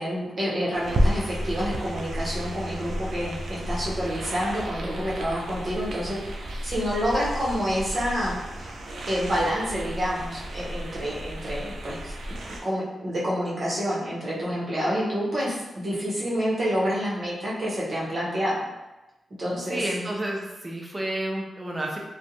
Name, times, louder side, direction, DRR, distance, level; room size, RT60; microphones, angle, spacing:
voice 1, 0.0-8.7 9.1-12.4 12.6-18.6 19.4-19.8, equal, 50° right, -7 dB, 0.9 m, -28 dB
sound 1, 0.7-12.6, equal, 70° right, 0.4 m, -32 dB
voice 2, 19.7-22.0, right 1 dB, 20° right, -1 dB, 0.5 m, -30 dB
2.4 x 2.2 x 2.8 m, 1.0 s
cardioid pair, 80°, 0 cm